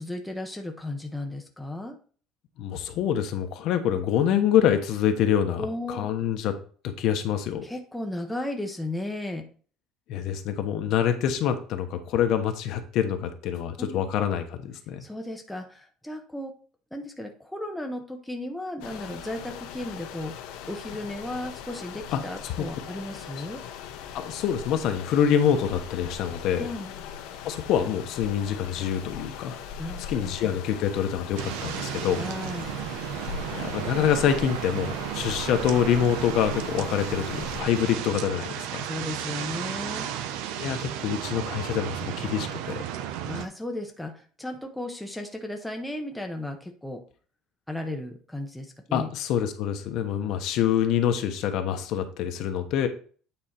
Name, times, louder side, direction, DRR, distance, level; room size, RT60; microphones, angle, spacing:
voice 1, 0.0-2.0 5.6-6.0 7.6-9.5 13.8-14.0 15.0-16.5 16.9-20.3 20.7-23.6 26.5-26.9 29.8-30.3 32.1-32.7 38.8-40.1 43.2-47.0 47.7-49.1 50.3-50.4, left 1 dB, ahead, 2 dB, 0.8 m, -35 dB
voice 2, 2.6-6.5 6.8-7.6 10.1-15.0 22.1-22.7 24.1-26.7 27.4-29.6 30.1-32.2 33.5-38.9 40.5-42.8 48.9-52.9, left 9 dB, 50° left, 7 dB, 1.0 m, -26 dB
sound 1, 18.8-37.6, left 8 dB, 75° left, 1.1 m, -40 dB
sound 2, 31.4-43.5, right 10 dB, 80° right, 0.8 m, -33 dB
8.9 x 4.4 x 4.4 m, 0.42 s
cardioid pair, 170°, 0 cm